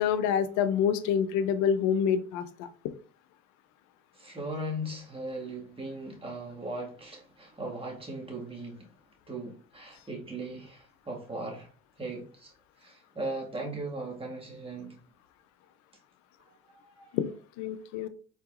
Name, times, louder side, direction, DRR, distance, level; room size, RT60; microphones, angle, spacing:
voice 1, 0.0-2.7 17.1-18.1, left 8 dB, 75° left, 0.6 m, -27 dB
voice 2, 4.2-8.9 9.3-11.7 12.0-12.5 12.8-15.0 16.8-17.1, right 1 dB, 20° right, 1.8 m, -38 dB
4.5 x 3.9 x 2.5 m
supercardioid pair, 80°, 29 cm